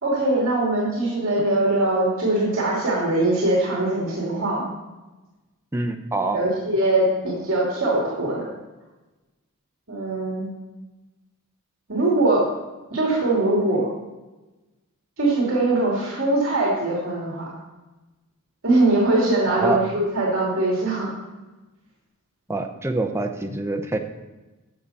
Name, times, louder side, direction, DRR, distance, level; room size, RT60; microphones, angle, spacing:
voice 1, 0.0-4.7 6.3-8.5 9.9-10.5 11.9-12.5 12.9-13.9 15.2-17.5 18.6-21.1, right 2 dB, 65° right, -5 dB, 2.6 m, -22 dB
voice 2, 5.7-6.4 19.5-19.8 22.5-24.0, right 2 dB, 10° right, 4 dB, 0.7 m, -25 dB
12.5 x 6.6 x 4.2 m, 1.1 s
head